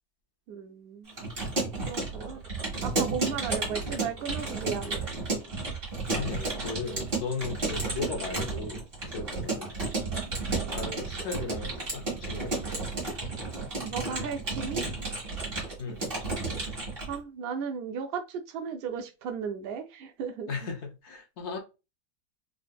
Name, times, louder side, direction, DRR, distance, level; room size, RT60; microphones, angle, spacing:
voice 1, 0.5-1.2 1.8-2.4 2.8-5.0 13.8-14.8 17.1-20.7, right 6 dB, 85° right, 0.5 m, -35 dB
Keyboard (musical) / Computer keyboard, 1.1-17.2, right 3 dB, 40° right, 1.6 m, -32 dB
voice 2, 6.1-9.8 10.7-12.5 15.8-16.0 20.5-21.6, left 4 dB, 60° left, 0.8 m, -37 dB
3.8 x 2.5 x 2.2 m
omnidirectional pair, 1.6 m